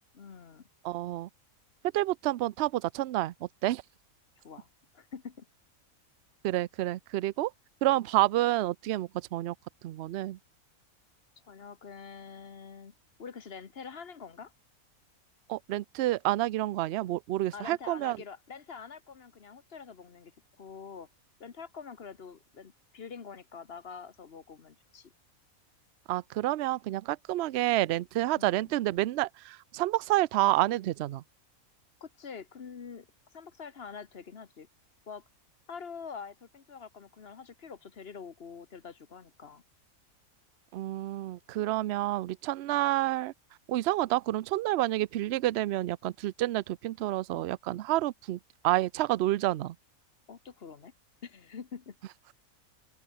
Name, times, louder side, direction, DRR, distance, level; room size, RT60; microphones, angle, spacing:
voice 1, 0.1-0.7 4.4-5.5 11.4-12.9 13.2-14.5 17.5-20.3 20.6-21.1 21.4-25.1 28.3-28.7 32.0-33.1 33.3-34.7 35.1-35.2 35.7-39.6 50.3-50.9 51.2-52.0, left 6 dB, 45° left, 1.3 m, -45 dB
voice 2, 0.8-1.3 1.9-3.8 6.4-7.5 7.8-9.5 9.8-10.4 15.5-18.2 26.1-31.2 40.7-43.3 43.7-49.8, right 16 dB, 65° right, 0.7 m, -29 dB
open air
omnidirectional pair, 1.5 m